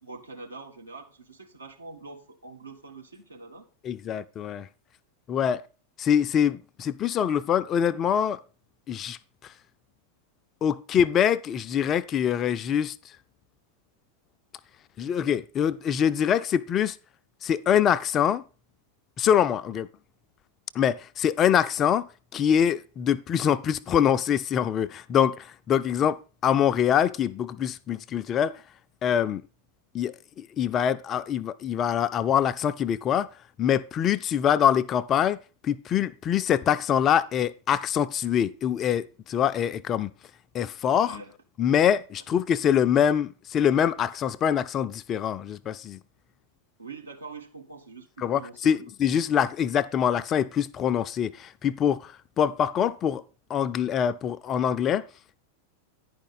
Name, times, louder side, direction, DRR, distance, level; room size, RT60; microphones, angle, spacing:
voice 1, 0.0-3.7 5.5-5.6 19.7-19.8 40.9-41.3 42.2-42.3 46.8-48.8, right 3 dB, 80° right, 1.8 m, -44 dB
voice 2, 3.8-4.7 5.3-5.6 6.0-8.4 8.9-9.2 10.6-12.9 15.0-17.0 17.4-18.4 19.2-19.9 20.7-22.1 22.3-28.6 29.0-29.4 29.9-33.3 33.6-35.4 35.6-40.1 40.5-41.2 41.6-46.0 48.2-53.2 53.5-55.0, left 9 dB, 30° left, 0.5 m, -24 dB
10.5 x 5.2 x 5.5 m
figure-of-eight pair, 90°, 0 cm